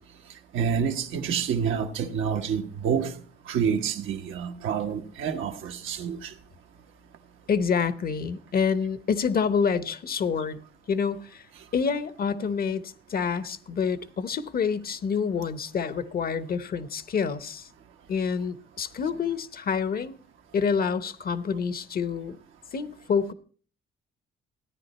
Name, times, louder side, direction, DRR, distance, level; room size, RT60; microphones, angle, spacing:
voice 1, 0.5-3.2 3.5-6.3, right 7 dB, 80° right, 1.2 m, -28 dB
voice 2, 7.5-10.6 10.9-11.4 11.7-17.7 18.1-20.2 20.5-22.4 22.7-23.3, left 6 dB, 50° left, 0.9 m, -27 dB
14.5 x 9.9 x 4.2 m
cardioid pair, 90°, 20 cm